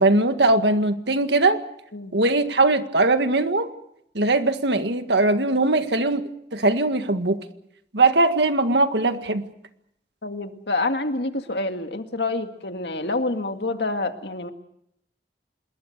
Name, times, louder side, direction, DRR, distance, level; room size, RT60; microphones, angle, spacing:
voice 1, 0.0-1.6 2.1-3.7 4.2-6.2 6.5-7.4 7.9-9.4, right 2 dB, 80° right, 8 dB, 1.8 m, -20 dB
voice 2, 10.2-14.5, left 2 dB, 80° left, 6 dB, 2.0 m, -27 dB
26.5 x 21.5 x 6.7 m, 0.76 s
head